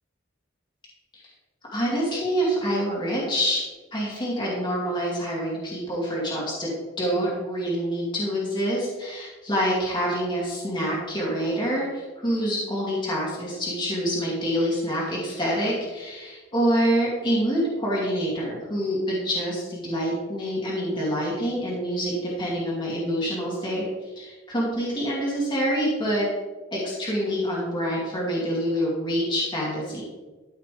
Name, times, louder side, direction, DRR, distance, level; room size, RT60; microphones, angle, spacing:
voice 1, 1.7-3.6 3.9-6.7 7.0-26.3 26.7-30.0, equal, 25° left, -5 dB, 2.5 m, -26 dB
13.0 x 5.8 x 3.4 m, 1.3 s
head